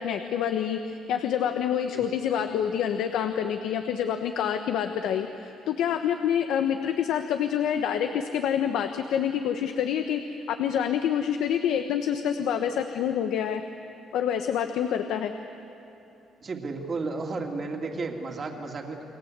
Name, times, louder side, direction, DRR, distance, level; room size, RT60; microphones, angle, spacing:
voice 1, 0.0-10.2 10.5-13.6 14.1-15.3, left 9 dB, 80° left, 7 dB, 1.1 m, -27 dB
voice 2, 16.4-19.0, right 3 dB, 35° right, 2 dB, 2.8 m, -33 dB
29.5 x 22.5 x 8.2 m, 2.9 s
cardioid pair, 130°, 0 cm